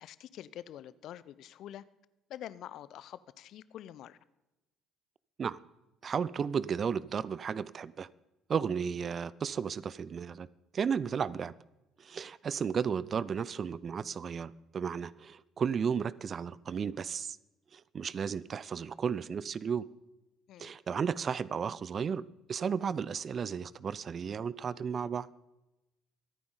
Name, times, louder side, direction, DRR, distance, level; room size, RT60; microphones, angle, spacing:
voice 1, 0.0-1.8 2.3-4.2 20.5-20.7, left 11 dB, 55° left, 17 dB, 0.5 m, -46 dB
voice 2, 6.0-8.1 8.5-10.5 10.7-11.5 12.0-17.4 17.7-19.8 20.6-22.2 22.5-25.4, right 6 dB, 40° right, 20 dB, 0.5 m, -34 dB
25.0 x 9.5 x 3.9 m, 0.99 s
figure-of-eight pair, 50°, 0 cm